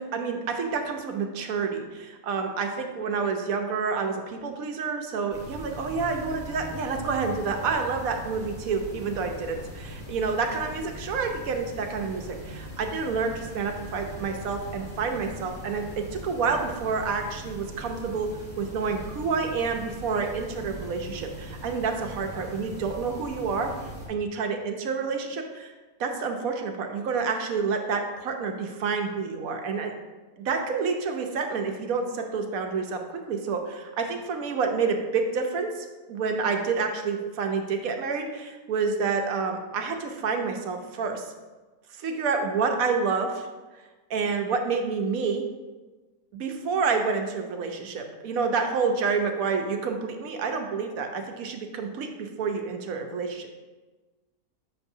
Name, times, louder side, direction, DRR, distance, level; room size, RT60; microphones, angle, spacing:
voice 1, 0.0-15.8 16.2-18.3 18.6-23.7 24.1-25.7 26.0-29.9 30.4-33.0 33.3-41.3 42.0-43.5 44.1-45.4 46.3-53.5, right 5 dB, 65° right, 4 dB, 1.1 m, -28 dB
sound 1, 5.3-24.1, equal, 10° left, 1.9 m, -41 dB
6.8 x 6.0 x 2.7 m, 1.2 s
omnidirectional pair, 1.7 m